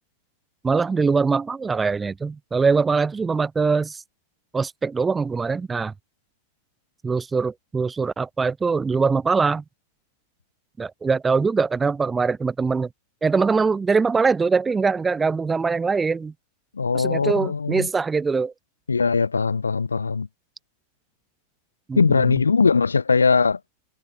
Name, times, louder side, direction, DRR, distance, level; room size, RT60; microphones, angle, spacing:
voice 1, 0.6-4.0 4.5-5.9 7.0-9.6 10.8-12.9 13.2-16.3 16.9-18.5 21.9-22.3, right 4 dB, 15° right, 7.9 m, -22 dB
voice 2, 16.8-17.9 18.9-20.3 22.0-23.6, left 5 dB, 75° left, 5.0 m, -20 dB
figure-of-eight pair, 90°, 0 cm